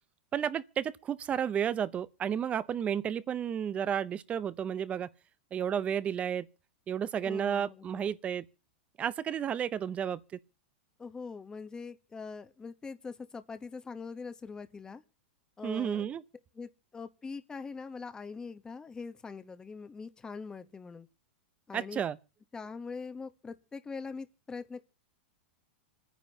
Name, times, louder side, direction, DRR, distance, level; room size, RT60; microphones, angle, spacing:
voice 1, 0.3-5.1 5.5-6.5 6.9-8.5 9.0-10.2 15.6-16.2 21.7-22.2, right 8 dB, 20° right, 0.7 m, -32 dB
voice 2, 7.2-8.2 11.0-15.0 15.6-16.1 16.5-21.1 21.7-22.0 22.5-24.8, left 4 dB, 15° left, 1.0 m, -43 dB
27.0 x 10.0 x 2.9 m
supercardioid pair, 140°, 6 cm